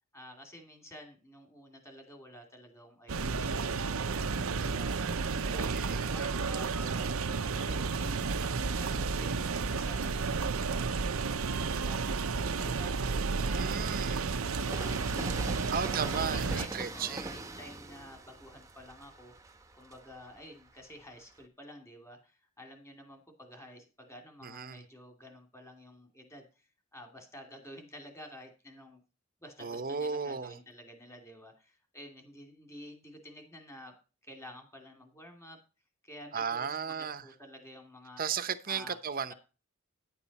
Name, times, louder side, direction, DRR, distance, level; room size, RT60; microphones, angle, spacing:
voice 1, 0.1-5.1 5.4-8.5 8.7-13.0 13.4-15.6 16.0-29.0 29.4-33.9 34.2-35.6 36.0-38.2 38.7-39.0 39.3-39.4, equal, 15° left, 2.6 m, -51 dB
sound 1, 3.1-16.7, right 4 dB, 85° right, 0.8 m, -32 dB
voice 2, 5.5-6.1 13.4-14.3 15.7-17.4 24.4-24.8 29.6-30.5 36.3-37.2 38.2-39.3, right 6 dB, 45° right, 0.9 m, -35 dB
Train, 8.6-10.2 10.8-21.4, right 2 dB, 15° right, 1.0 m, -45 dB
10.5 x 9.0 x 4.2 m
head